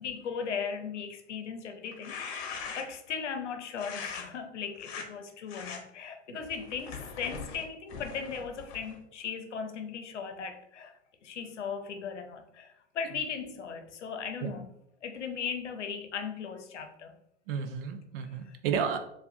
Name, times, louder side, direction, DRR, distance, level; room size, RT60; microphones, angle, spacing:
voice 1, 0.0-2.5 2.8-10.9 11.2-14.7 15.0-17.1, left 6 dB, 75° left, 6 dB, 0.8 m, -37 dB
sound 1, 1.9-3.1 3.8-4.2 4.8-5.1 5.5-5.8 6.4-9.0, left 5 dB, 45° left, 0.9 m, -41 dB
voice 2, 17.5-19.0, right 7 dB, 50° right, 7 dB, 0.6 m, -32 dB
6.8 x 2.5 x 2.6 m, 0.80 s
figure-of-eight pair, 90°, 36 cm